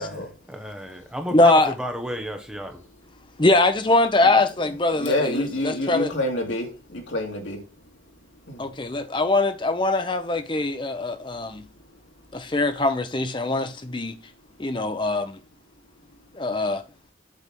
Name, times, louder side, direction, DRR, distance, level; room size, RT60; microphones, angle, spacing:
voice 1, 0.0-2.9, equal, 5° right, 1.1 m, -32 dB
voice 2, 1.3-1.7 3.4-6.1 8.6-11.6 12.3-14.2 14.6-15.4 16.3-16.8, left 2 dB, 25° left, 0.7 m, -22 dB
voice 3, 4.9-7.6 8.5-8.6, left 1 dB, 80° left, 2.0 m, -27 dB
8.4 x 3.5 x 6.1 m
head